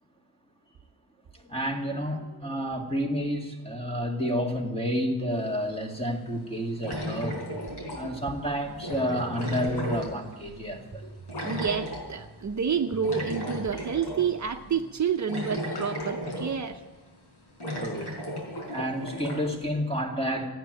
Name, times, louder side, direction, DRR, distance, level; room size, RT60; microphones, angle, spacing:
voice 1, 1.3-7.4 7.9-11.1 17.8-18.2 18.7-20.5, equal, 15° left, 0 dB, 2.3 m, -30 dB
sound 1, 5.4-5.5 6.8-8.3 8.8-10.6 11.3-12.1 13.0-14.3 14.7-14.8 15.3-16.7 17.1-17.2 17.6-19.4, equal, 85° left, 4.4 m, -34 dB
sound 2, 6.9-14.9, right 3 dB, 20° right, 1.5 m, -46 dB
voice 2, 11.4-16.8, right 6 dB, 45° right, 5 dB, 0.7 m, -29 dB
14.5 x 9.6 x 9.1 m, 1.2 s
wide cardioid pair, 155°, 39 cm